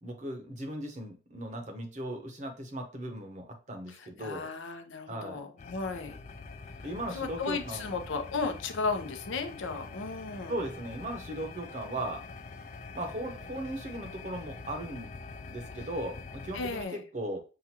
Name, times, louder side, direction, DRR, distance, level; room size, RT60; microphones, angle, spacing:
voice 1, 0.0-4.5 5.1-5.4 6.8-7.9 10.5-12.2 12.9-15.1 15.5-17.4, right 1 dB, 40° right, 4 dB, 0.8 m, -37 dB
voice 2, 3.9-6.1 7.1-10.5 16.5-17.0, left 4 dB, 80° left, 6 dB, 0.7 m, -35 dB
sound 1, 5.6-16.8, left 4 dB, 35° left, 0.3 m, -45 dB
5.8 x 2.5 x 2.8 m, 0.34 s
head